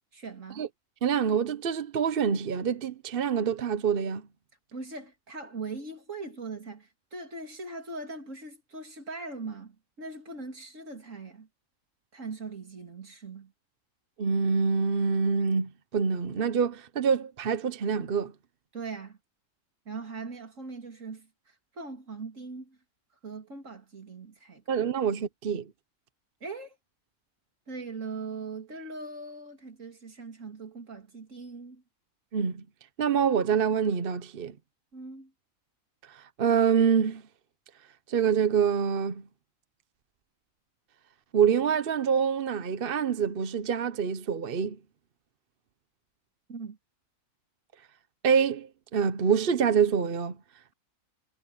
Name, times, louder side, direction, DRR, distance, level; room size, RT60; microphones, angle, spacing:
voice 1, 0.1-0.7 4.7-11.5 12.1-13.5 18.7-19.2 19.9-22.8 23.2-24.6 26.4-26.8 27.7-31.8 34.9-35.3 46.5-46.8, right 3 dB, 65° right, 3.5 m, -40 dB
voice 2, 1.0-4.3 14.2-18.3 24.7-25.7 32.3-32.6 33.0-34.6 36.0-37.2 38.1-39.3 41.3-44.8 48.2-50.4, right 7 dB, 50° right, 0.9 m, -26 dB
omnidirectional pair, 1.4 m